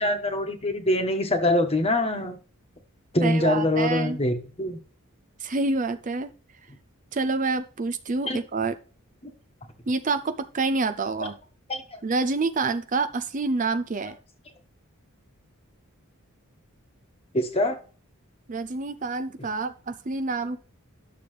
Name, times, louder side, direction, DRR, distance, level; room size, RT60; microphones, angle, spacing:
voice 1, 0.0-2.4 3.1-4.8 8.3-8.4 11.7-12.0 17.3-17.8, left 1 dB, 30° left, 6 dB, 1.3 m, -24 dB
voice 2, 3.2-4.2 5.4-6.3 7.1-8.8 9.9-11.4 12.0-14.2 18.5-20.6, right 3 dB, 35° right, 9 dB, 0.5 m, -27 dB
11.0 x 6.9 x 3.3 m, 0.37 s
head